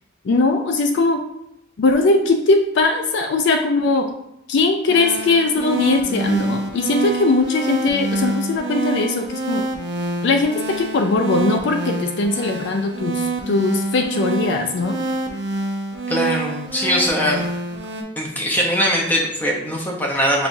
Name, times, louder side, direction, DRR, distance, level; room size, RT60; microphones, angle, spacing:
voice 1, 0.2-1.2 1.8-4.1 4.5-9.6 10.2-15.0, left 3 dB, 60° left, 5 dB, 0.4 m, -20 dB
sound 1, 4.9-18.0, right 2 dB, 55° right, 0.6 m, -26 dB
voice 2, 16.1-17.5 18.2-20.5, equal, 10° left, -2 dB, 0.6 m, -21 dB
6.8 x 2.3 x 2.6 m, 0.80 s
head